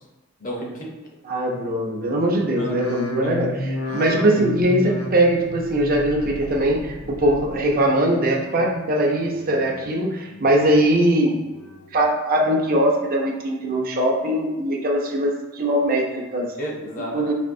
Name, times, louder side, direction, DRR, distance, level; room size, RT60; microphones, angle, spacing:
voice 1, 0.4-0.9 2.3-2.8 3.2-3.5 3.8-4.3 16.6-17.3, equal, 40° left, -2 dB, 0.8 m, -33 dB
voice 2, 1.3-11.3 11.9-16.5 17.1-17.3, right 1 dB, 45° right, 0 dB, 0.6 m, -21 dB
sound 1, 2.4-7.8 8.1-8.7 9.2-9.9 10.3-10.9 11.4-12.0 12.5-13.1 13.6-13.7, left 1 dB, 70° left, 0.5 m, -34 dB
4.3 x 2.8 x 2.6 m, 1.1 s
head